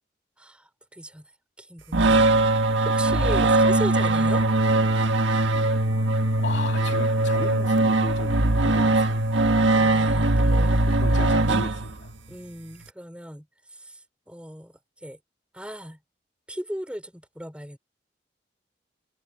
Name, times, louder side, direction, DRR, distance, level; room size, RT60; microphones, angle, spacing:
voice 1, 0.4-1.3 1.6-2.4 2.8-4.5 9.7-11.5 12.3-15.2 15.5-16.0 16.5-17.8, equal, 5° right, 4.6 m, -37 dB
sound 1, 1.9-12.2, right 2 dB, 75° right, 1.6 m, -21 dB
voice 2, 6.4-9.1 9.6-10.0 10.8-12.1, left 2 dB, 70° left, 2.9 m, -36 dB
head